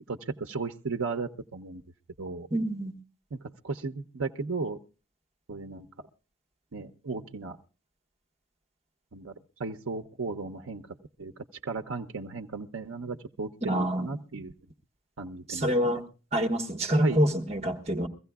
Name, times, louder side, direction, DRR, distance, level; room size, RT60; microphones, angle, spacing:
voice 1, 0.1-1.8 2.2-2.5 3.3-4.8 5.5-5.9 6.7-7.6 9.1-9.3 9.6-10.8 11.2-11.3 11.6-14.5 15.2-16.0 17.0-17.2, right 3 dB, 90° right, 0.7 m, -35 dB
voice 2, 2.5-2.9 13.6-14.1 15.5-16.0 16.3-18.1, equal, 30° right, 1.4 m, -26 dB
23.0 x 15.5 x 2.3 m
head